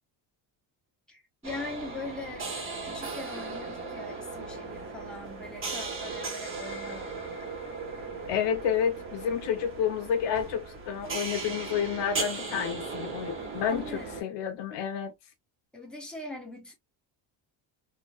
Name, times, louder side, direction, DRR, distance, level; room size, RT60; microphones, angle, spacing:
voice 1, 1.1-2.5 2.8-7.1 7.4-7.5 13.3-14.2 15.7-16.7, left 2 dB, ahead, 1.2 m, -41 dB
sound 1, 1.4-14.2, right 3 dB, 30° right, 1.2 m, -37 dB
voice 2, 8.3-13.8 14.2-15.1, left 8 dB, 75° left, 0.9 m, -30 dB
3.3 x 2.4 x 2.3 m
cardioid pair, 135°, 43 cm